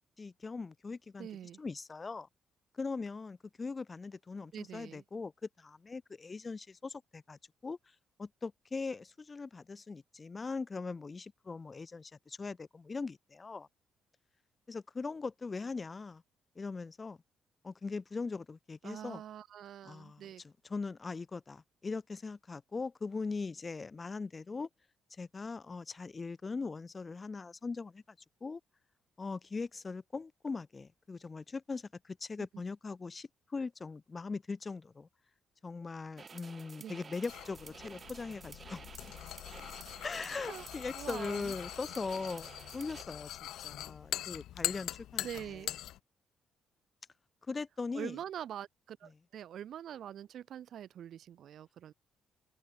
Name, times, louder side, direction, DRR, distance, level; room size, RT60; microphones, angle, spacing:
voice 1, 0.2-1.3 1.6-2.3 2.7-5.3 5.6-7.8 8.2-13.7 14.7-16.2 16.6-17.2 17.6-19.2 19.8-24.7 25.2-28.0 28.4-28.6 29.2-35.1 35.6-38.8 40.0-43.3 43.6-45.3 47.5-48.2, left 4 dB, 30° left, 0.4 m, -40 dB
voice 2, 1.2-1.6 4.5-5.0 18.8-20.4 36.8-37.0 40.5-40.6 40.9-41.5 45.2-45.7 47.9-51.9, right 10 dB, 70° right, 0.4 m, -44 dB
sound 1, 36.2-43.0, right 5 dB, 40° right, 3.1 m, -52 dB
sound 2, 37.3-46.0, left 13 dB, 80° left, 0.6 m, -42 dB
cardioid pair, 90°, 0 cm